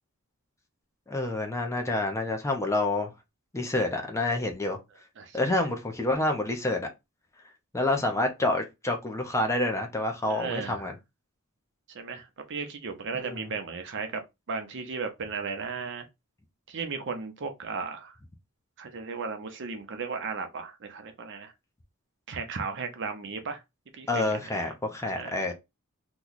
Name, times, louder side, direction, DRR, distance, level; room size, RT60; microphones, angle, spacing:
voice 1, 1.1-3.1 3.5-4.8 5.3-6.9 7.7-11.0 13.1-13.5 24.1-25.5, left 2 dB, 15° left, 0.6 m, -28 dB
voice 2, 10.2-10.9 11.9-14.2 14.5-16.1 16.7-18.2 18.8-21.5 22.3-23.6 23.9-24.7 25.2-25.5, right 4 dB, 60° right, 0.7 m, -35 dB
3.0 x 2.2 x 3.9 m
head